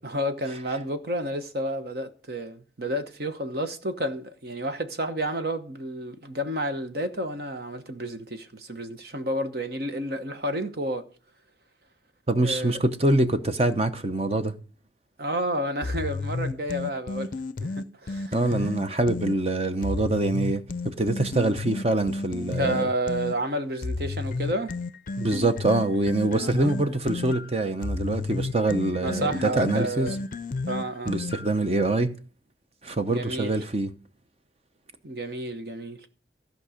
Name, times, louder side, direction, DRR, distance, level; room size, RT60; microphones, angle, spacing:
voice 1, 0.0-11.1 12.3-12.8 15.2-17.3 17.6-18.3 22.6-24.8 26.4-26.7 29.0-30.2 30.7-31.2 33.1-33.5 35.0-36.1, right 1 dB, 60° right, 1.0 m, -30 dB
voice 2, 12.3-14.6 18.3-22.9 25.2-30.2 31.1-32.2 32.8-33.9, right 2 dB, 35° right, 0.7 m, -25 dB
sound 1, 15.8-19.4 19.8-23.4 23.8-31.6, left 3 dB, 50° left, 0.5 m, -32 dB
15.5 x 5.3 x 5.1 m
head